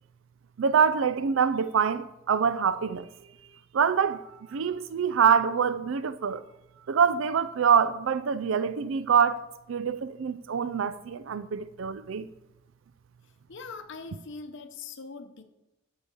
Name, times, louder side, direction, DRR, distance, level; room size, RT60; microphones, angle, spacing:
voice 1, 0.6-3.1 3.7-4.2 4.5-6.4 6.9-9.4 9.7-12.3, right 6 dB, 70° right, 0.4 m, -25 dB
voice 2, 13.5-15.4, left 4 dB, 60° left, 0.8 m, -41 dB
12.0 x 4.9 x 8.1 m
head